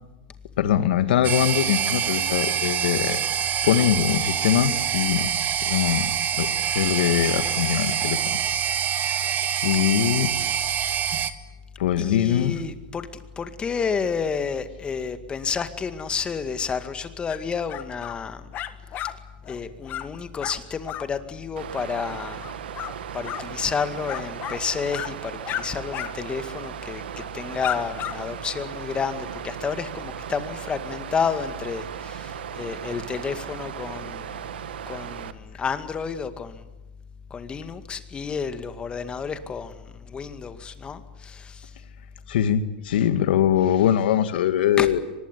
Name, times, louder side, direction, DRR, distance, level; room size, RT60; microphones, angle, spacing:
voice 1, 0.6-3.2 3.6-5.3 5.6-6.1 6.4-6.5 6.7-8.4 9.0-9.3 9.6-10.3 11.8-12.6 42.3-45.0, left 10 dB, 75° left, 10 dB, 2.2 m, -22 dB
sound 1, 1.2-11.3, right 9 dB, 30° right, 1.6 m, -25 dB
voice 2, 12.0-13.1 13.4-18.4 19.5-22.5 23.1-27.0 27.3-34.4 34.9-36.6 37.3-41.7 44.8-44.9, left 6 dB, 20° left, 9 dB, 2.1 m, -30 dB
sound 2, 17.3-17.4 17.7-18.2 18.5-19.1 19.4-19.6 19.8-20.1 20.4-20.6 20.9-21.1 22.4-22.9 23.2-23.5 24.1-24.6 24.9-25.1 25.4-25.6 25.9-26.1 26.4-26.5 27.2-27.3 27.6-28.2, left 12 dB, 35° left, 1.7 m, -32 dB
Water, 21.6-35.3, right 10 dB, 85° right, 1.6 m, -37 dB
24.0 x 20.5 x 10.0 m, 1.0 s
hypercardioid pair, 130°, 5 cm